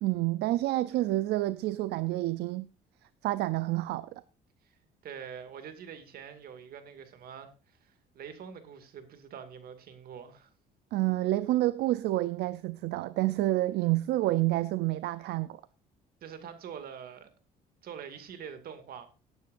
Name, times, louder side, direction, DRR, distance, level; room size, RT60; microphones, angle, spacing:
voice 1, 0.0-2.7 3.2-4.1 10.9-15.6, right 16 dB, 80° right, 0.5 m, -28 dB
voice 2, 5.0-10.5 16.2-17.3 17.8-19.1, right 7 dB, 60° right, 2.3 m, -45 dB
18.0 x 9.3 x 2.6 m
cardioid pair, 110°, 17 cm